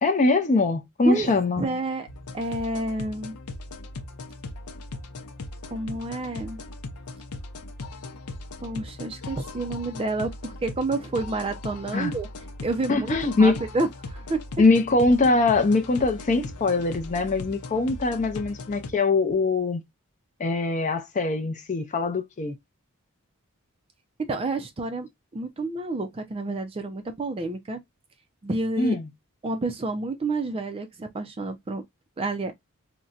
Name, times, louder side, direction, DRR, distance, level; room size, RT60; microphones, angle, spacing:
voice 1, 0.0-1.7 11.9-12.1 12.9-13.6 14.6-19.8 20.4-22.5 28.8-29.1, left 3 dB, 35° left, 0.4 m, -22 dB
voice 2, 1.6-2.1 2.3-3.3 5.7-6.6 8.6-12.3 12.6-14.4 24.3-25.1 25.3-27.8 28.4-29.0 29.4-31.8 32.2-32.5, right 2 dB, 25° right, 0.4 m, -29 dB
sound 1, 2.1-18.9, left 2 dB, 90° left, 0.6 m, -39 dB
3.9 x 2.1 x 2.3 m
head